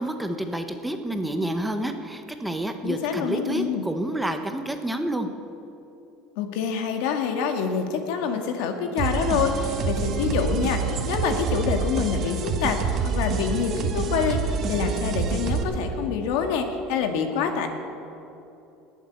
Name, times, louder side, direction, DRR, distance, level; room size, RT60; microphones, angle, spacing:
voice 1, 0.0-5.3, right 1 dB, 5° right, 6 dB, 1.0 m, -29 dB
voice 2, 2.8-3.8 6.4-14.4 14.7-17.7, left 6 dB, 75° left, 5 dB, 1.9 m, -26 dB
sound 1, 9.0-15.6, right 5 dB, 45° right, 1.7 m, -27 dB
20.0 x 7.6 x 8.6 m, 2.9 s
supercardioid pair, 130°, 0 cm